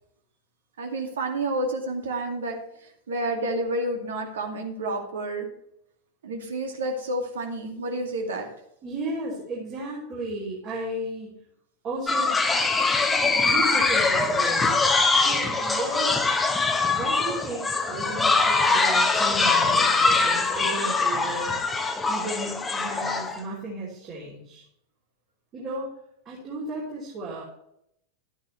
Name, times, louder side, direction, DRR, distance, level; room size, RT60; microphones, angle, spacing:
voice 1, 0.8-5.5 6.2-8.5, right 1 dB, 65° right, 2 dB, 2.2 m, -30 dB
voice 2, 8.8-11.4 11.8-12.3 13.5-14.8 15.1-16.2 16.9-21.6 22.1-24.6 25.5-25.9 26.2-27.4, right 2 dB, 35° right, -6 dB, 3.3 m, -34 dB
sound 1, 12.1-23.4, left 3 dB, 15° left, 1.1 m, -23 dB
12.5 x 9.2 x 3.2 m, 0.75 s
figure-of-eight pair, 90°, 0 cm